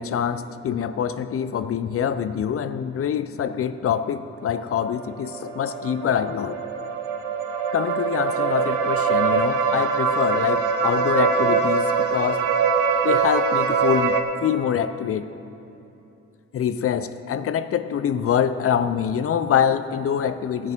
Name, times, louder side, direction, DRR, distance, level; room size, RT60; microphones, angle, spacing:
voice 1, 0.0-6.6 7.7-12.4 13.0-15.3 16.5-20.7, left 8 dB, 50° left, 12 dB, 0.5 m, -25 dB
sound 1, 4.9-14.2, right 5 dB, 85° right, 0.8 m, -23 dB
18.0 x 6.2 x 4.4 m, 2.8 s
cardioid pair, 90°, 30 cm